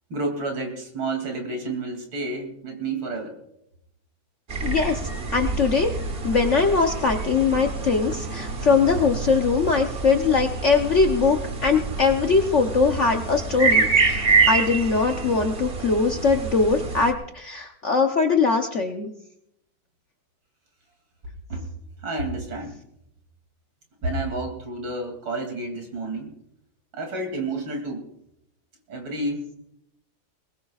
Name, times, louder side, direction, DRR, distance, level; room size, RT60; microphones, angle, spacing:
voice 1, 0.1-3.4 21.5-21.7 22.0-22.8 24.0-26.3 26.9-28.0 28.9-29.6, right 2 dB, 80° right, 3 dB, 3.5 m, -30 dB
sound 1, 4.5-17.1, right 4 dB, 35° right, 1.1 m, -27 dB
voice 2, 4.6-5.0 5.3-5.9 6.2-19.1, left 4 dB, 55° left, 4 dB, 0.9 m, -21 dB
21.5 x 20.5 x 2.4 m, 0.78 s
omnidirectional pair, 2.1 m